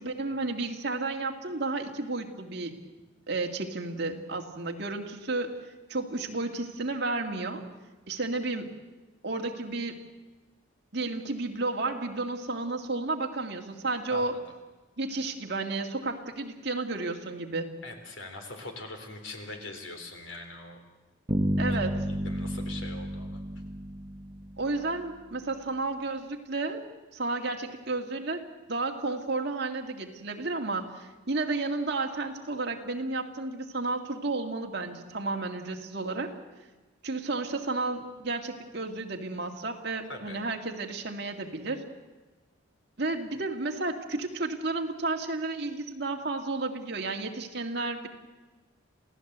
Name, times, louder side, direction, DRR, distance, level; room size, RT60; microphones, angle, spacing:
voice 1, 0.0-2.7 3.3-5.6 5.9-7.7 8.1-8.7 9.2-10.0 10.9-14.4 15.0-17.7 21.6-22.1 24.6-26.8 27.1-28.4 28.7-36.3 37.0-41.8 43.0-48.1, right 3 dB, 55° right, 3 dB, 2.2 m, -32 dB
voice 2, 17.8-20.8 21.6-23.4 40.1-40.4, left 2 dB, 80° left, 4 dB, 3.9 m, -42 dB
sound 1, 21.3-25.0, equal, 20° right, 1.0 m, -31 dB
28.0 x 16.5 x 8.1 m, 1.2 s
head